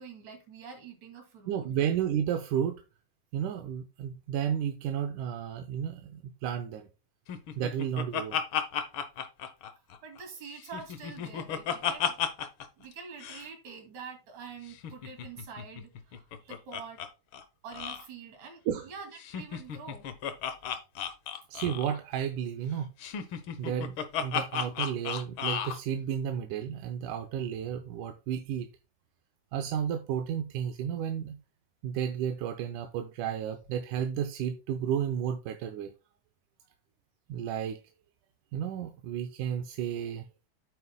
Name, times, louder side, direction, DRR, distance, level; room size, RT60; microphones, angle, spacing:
voice 1, 0.0-1.7 10.0-12.2 12.8-17.0 17.6-20.1, right 5 dB, 65° right, 4 dB, 3.6 m, -46 dB
voice 2, 1.5-2.8 3.3-6.9 7.6-8.4 18.7-18.9 21.5-22.9 23.6-28.7 29.5-31.4 31.8-35.9 37.3-37.8 38.5-40.3, right 9 dB, 85° right, 5 dB, 2.3 m, -32 dB
Laughter, 7.3-10.2 10.6-12.7 12.9-13.0 13.2-13.5 14.7-17.1 17.3-17.4 17.7-18.0 19.2-22.0 23.0-25.8, left 8 dB, 85° left, 1.1 m, -34 dB
9.3 x 9.0 x 2.2 m, 0.30 s
omnidirectional pair, 3.5 m